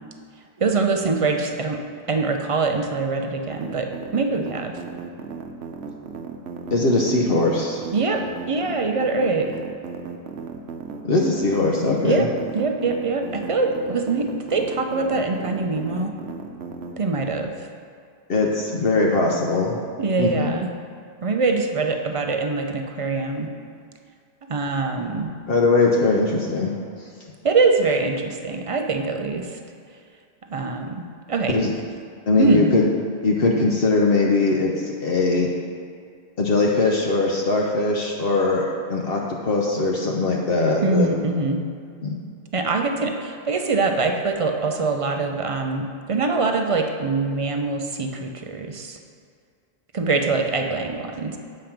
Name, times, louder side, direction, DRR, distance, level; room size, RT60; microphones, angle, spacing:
voice 1, 0.6-1.8 2.1-3.9 4.1-4.7 7.9-9.5 12.0-12.3 12.5-16.1 17.0-17.5 20.0-20.7 21.2-23.5 24.5-25.3 27.4-29.6 30.5-31.6 32.4-32.7 40.8-41.6 42.5-49.0 49.9-51.4, right 3 dB, 45° right, 4 dB, 0.5 m, -23 dB
sound 1, 3.5-16.9, right 6 dB, 70° right, 0.9 m, -35 dB
voice 2, 6.7-7.8 11.0-12.3 18.3-19.8 20.2-20.5 25.5-26.7 31.5-31.7 32.3-32.8 33.2-35.5 36.4-38.6 38.9-39.2 39.5-41.1 42.0-42.2, left 3 dB, 60° left, -1 dB, 0.9 m, -20 dB
7.6 x 5.0 x 5.8 m, 2.3 s
omnidirectional pair, 1.2 m